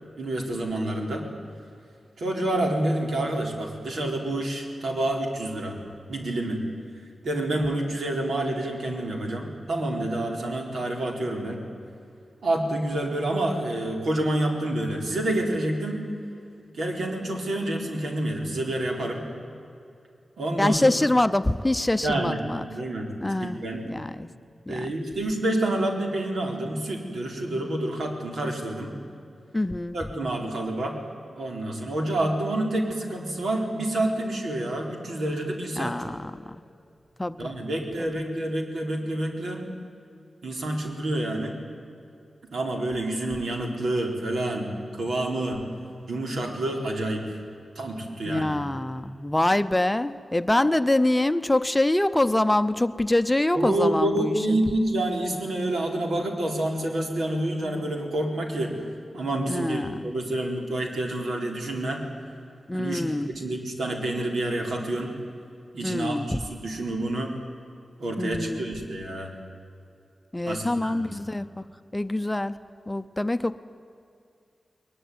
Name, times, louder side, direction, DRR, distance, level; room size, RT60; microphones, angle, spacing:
voice 1, 0.2-1.3 2.2-5.8 6.1-6.6 7.2-11.6 12.4-16.0 16.7-19.3 20.4-20.9 22.0-22.4 22.7-23.1 23.4-23.9 24.7-29.0 29.9-31.0 31.4-36.0 37.4-39.6 40.4-41.6 42.5-45.6 46.1-47.4 47.8-48.5 53.5-58.8 59.1-62.0 62.7-65.2 65.7-67.4 68.0-69.3 70.5-71.1, right 1 dB, 90° right, 2 dB, 4.2 m, -28 dB
voice 2, 20.6-22.6 23.2-23.6 23.9-24.3 24.7-24.9 29.5-30.0 35.8-36.6 37.2-37.5 38.0-38.1 48.3-54.6 59.5-60.1 62.7-63.3 65.8-66.4 68.2-68.6 70.3-71.6 71.9-72.5 72.9-73.6, left 1 dB, 10° left, 11 dB, 0.6 m, -25 dB
21.0 x 20.5 x 9.5 m, 2.5 s
wide cardioid pair, 135°, 0 cm